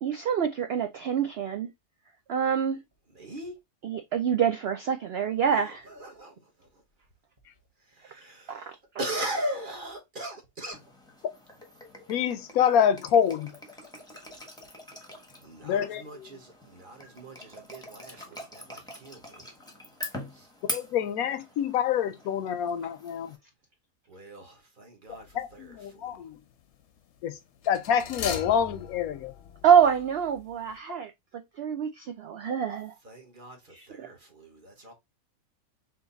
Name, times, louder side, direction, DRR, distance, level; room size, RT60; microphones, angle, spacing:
voice 1, 0.0-1.7 2.3-2.8 3.8-5.9 8.5-8.8 18.1-18.2 29.6-33.0 33.7-34.1, right 8 dB, 70° right, 0.6 m, -26 dB
voice 2, 3.1-3.5 5.5-6.7 7.9-8.5 9.0-10.8 15.4-19.5 20.3-20.5 24.1-26.2 33.0-34.9, right 1 dB, 40° right, 1.1 m, -39 dB
sound 1, 10.7-23.4, left 1 dB, 5° left, 0.7 m, -43 dB
voice 3, 12.1-13.5 15.6-16.3 20.7-23.3 25.3-26.4 27.2-27.4 27.7-29.3, left 8 dB, 75° left, 1.0 m, -26 dB
sound 2, 25.2-25.5 27.6-30.4 30.7-30.8, left 7 dB, 60° left, 0.8 m, -39 dB
3.8 x 2.9 x 3.8 m
omnidirectional pair, 1.6 m